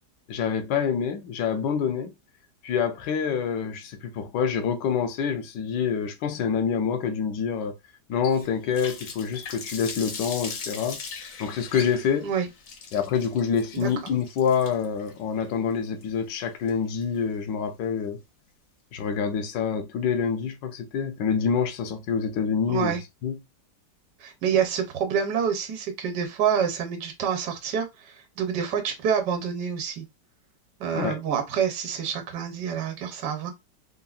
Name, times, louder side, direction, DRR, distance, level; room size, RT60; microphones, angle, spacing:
voice 1, 0.3-2.1 2.6-7.7 8.1-11.0 11.4-12.3 12.9-18.2 18.9-23.0 23.2-23.4 30.9-31.2, left 7 dB, 80° left, 1.2 m, -26 dB
Water tap faucet, 8.2-17.2, left 5 dB, 65° left, 0.9 m, -39 dB
voice 2, 22.7-23.0 24.2-30.0 30.8-33.5, right 7 dB, 75° right, 1.4 m, -27 dB
3.7 x 2.0 x 2.3 m
omnidirectional pair, 1.9 m